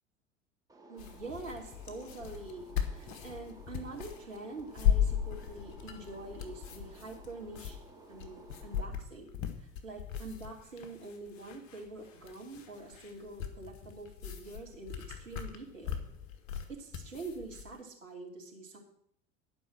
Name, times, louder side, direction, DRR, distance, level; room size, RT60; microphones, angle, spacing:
sound 1, 0.7-8.9, right 2 dB, 10° right, 2.0 m, -55 dB
voice 1, 0.9-7.8 8.1-9.3 9.6-16.0 16.7-18.8, right 3 dB, 75° right, -1 dB, 2.8 m, -45 dB
sound 2, 1.0-17.7, left 9 dB, 45° left, 1.5 m, -37 dB
11.5 x 5.4 x 7.4 m, 0.68 s
figure-of-eight pair, 75°, 38 cm